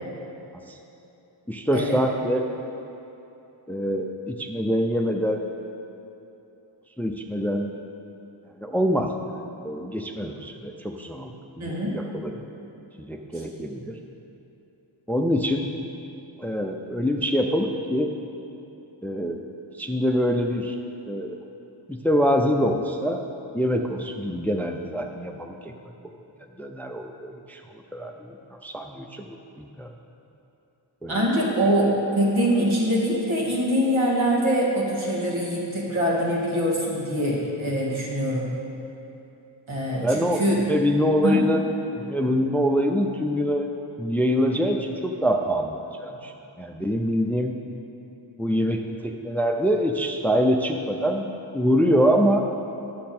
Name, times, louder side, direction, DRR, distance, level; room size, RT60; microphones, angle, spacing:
voice 1, 1.5-2.4 3.7-5.4 7.0-7.7 8.6-9.1 9.6-11.3 11.6-12.3 13.0-14.0 15.1-15.7 16.4-18.1 19.0-19.5 19.8-20.8 21.1-21.4 21.9-23.2 23.5-25.7 26.6-27.6 27.9-29.9 31.0-31.2 31.5-31.7 40.0-40.4 40.7-41.6 41.9-43.7 44.0-46.3 46.6-47.5 48.4-51.3 51.5-52.5, equal, 5° left, 4 dB, 0.5 m, -25 dB
voice 2, 11.6-12.0 13.3-13.4 31.1-38.5 39.7-40.6 41.2-41.4, equal, 80° right, -5 dB, 2.1 m, -23 dB
10.0 x 7.4 x 4.3 m, 2.9 s
wide cardioid pair, 75°, 47 cm